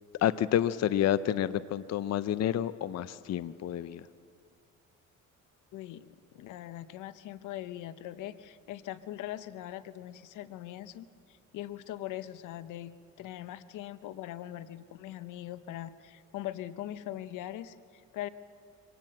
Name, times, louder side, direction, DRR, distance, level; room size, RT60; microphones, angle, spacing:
voice 1, 0.2-4.0, left 11 dB, 60° left, 15 dB, 0.7 m, -29 dB
voice 2, 5.7-18.3, left 13 dB, 90° left, 14 dB, 0.8 m, -41 dB
25.0 x 18.0 x 7.7 m, 2.3 s
cardioid pair, 90°, 30 cm